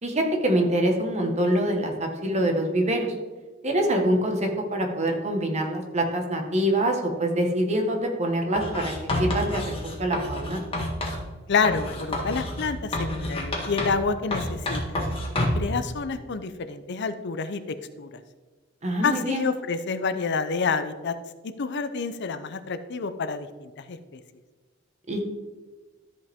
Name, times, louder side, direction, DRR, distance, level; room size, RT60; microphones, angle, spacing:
voice 1, 0.0-3.1 3.6-8.9 9.2-9.7 10.0-10.6 18.8-19.4 25.1-25.2, right 1 dB, 35° right, 2 dB, 1.3 m, -25 dB
Writing, 8.6-11.2 11.6-14.1 14.3-15.7, left 1 dB, 30° left, 1.6 m, -29 dB
voice 2, 11.5-15.0 15.4-17.6 18.0-18.2 19.0-21.1 21.6-24.2, left 5 dB, 55° left, 11 dB, 0.6 m, -28 dB
13.5 x 5.2 x 3.6 m, 1.3 s
head